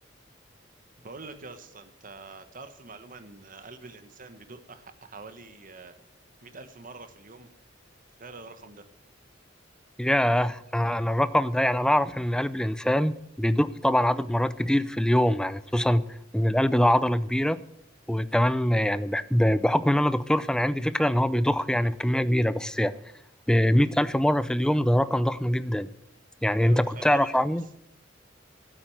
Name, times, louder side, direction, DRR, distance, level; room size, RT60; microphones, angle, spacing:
voice 1, 1.0-6.0 6.4-7.5 8.2-8.9 26.4-27.6, right 3 dB, 45° right, 10 dB, 1.3 m, -45 dB
voice 2, 10.0-16.0 16.3-17.6 18.1-22.9 23.5-25.9 26.4-27.6, equal, 5° left, 15 dB, 0.5 m, -23 dB
12.5 x 9.0 x 7.9 m, 0.74 s
head